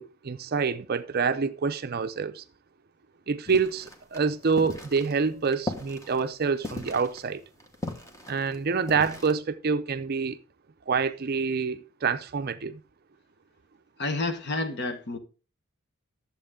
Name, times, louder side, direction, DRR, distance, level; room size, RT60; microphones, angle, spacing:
voice 1, 0.0-2.4 3.3-7.4 8.3-10.4 10.9-12.8, right 5 dB, 45° right, 0.5 m, -27 dB
sound 1, 3.4-9.3, left 2 dB, 15° left, 1.2 m, -38 dB
voice 2, 14.0-15.2, left 2 dB, 50° left, 1.1 m, -29 dB
11.5 x 7.4 x 3.7 m
head